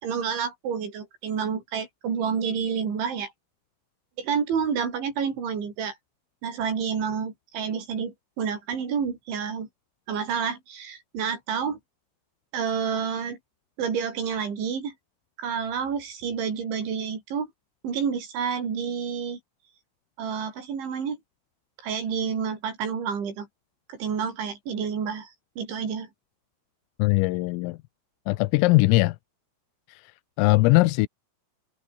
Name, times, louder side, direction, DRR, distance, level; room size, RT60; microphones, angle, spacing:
voice 1, 0.0-3.3 4.2-6.0 6.4-9.7 10.1-11.8 12.5-13.4 13.8-14.9 15.4-17.5 17.8-19.4 20.2-21.2 21.8-23.5 23.9-25.3 25.6-26.1, right 6 dB, 65° right, 7.6 m, -29 dB
voice 2, 27.0-27.8 28.3-29.2 29.9-30.0 30.4-31.1, left 21 dB, 90° left, 3.4 m, -20 dB
omnidirectional pair, 5.9 m